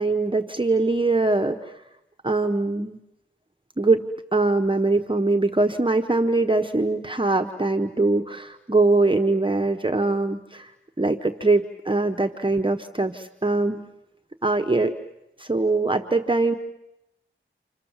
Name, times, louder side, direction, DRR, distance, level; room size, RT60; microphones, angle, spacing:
voice 1, 0.0-1.7 2.2-3.0 3.8-4.0 4.3-10.7 11.0-13.8 14.4-14.9 15.4-16.6, right 2 dB, 25° right, 4 dB, 1.2 m, -22 dB
30.0 x 26.0 x 7.3 m, 0.90 s
wide cardioid pair, 65°, 20 cm